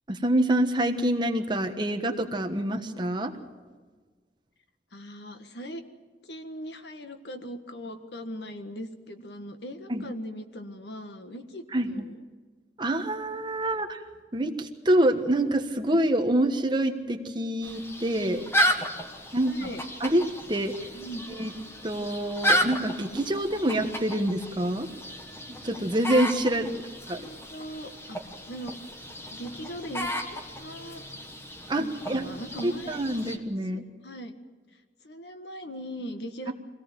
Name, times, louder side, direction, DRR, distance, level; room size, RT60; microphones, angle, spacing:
voice 1, 0.1-3.3 9.9-10.1 11.7-12.0 12.8-14.0 14.3-18.4 19.3-19.7 20.0-20.7 21.4-21.5 21.8-24.9 25.5-26.7 27.1-27.2 31.7-32.2 32.6-33.8, right 1 dB, 25° right, 6 dB, 1.4 m, -26 dB
voice 2, 4.9-5.8 6.2-12.2 19.4-19.9 20.9-21.3 26.7-26.8 27.1-28.2 28.4-28.8 29.3-31.0 31.8-33.0 33.3-33.4 33.7-34.4 35.0-36.5, equal, 75° left, 7 dB, 1.6 m, -40 dB
sound 1, 17.6-33.4, equal, 15° left, 1.5 m, -33 dB
24.0 x 17.5 x 7.5 m, 1.4 s
head